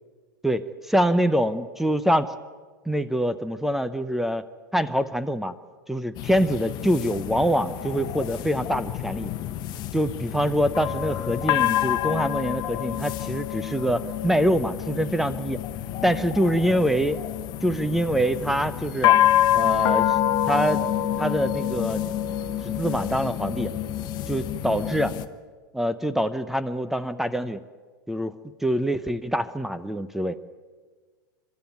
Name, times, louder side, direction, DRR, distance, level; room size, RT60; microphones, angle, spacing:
voice 1, 0.4-2.3 2.9-4.4 4.7-5.5 5.9-9.3 9.9-15.6 16.0-17.2 17.6-19.2 19.5-20.2 20.5-20.8 21.2-22.0 22.6-23.7 24.3-25.1 25.7-27.6 28.1-30.4, equal, 5° right, 13 dB, 0.8 m, -25 dB
sound 1, 6.1-25.2, left 12 dB, 40° left, 1.0 m, -27 dB
26.5 x 13.0 x 9.2 m, 1.5 s
figure-of-eight pair, 95°, 11 cm